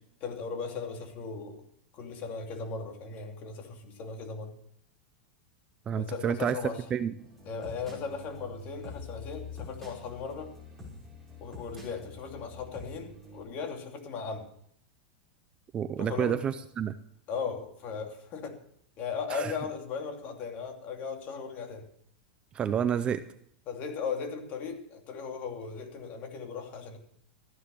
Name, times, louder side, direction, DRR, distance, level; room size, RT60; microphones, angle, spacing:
voice 1, 0.2-1.6 1.9-4.5 6.0-6.8 7.5-10.5 11.4-14.5 16.0-16.4 17.3-18.6 19.0-21.9 23.7-27.0, left 5 dB, 35° left, 3 dB, 2.8 m, -37 dB
voice 2, 5.9-6.6 6.9-7.1 15.7-17.0 19.3-19.5 22.5-23.2, right 8 dB, 20° right, 12 dB, 0.5 m, -29 dB
sound 1, 7.2-13.4, left 3 dB, 5° left, 5.2 m, -46 dB
14.0 x 10.0 x 6.8 m, 0.67 s
supercardioid pair, 160°, 5 cm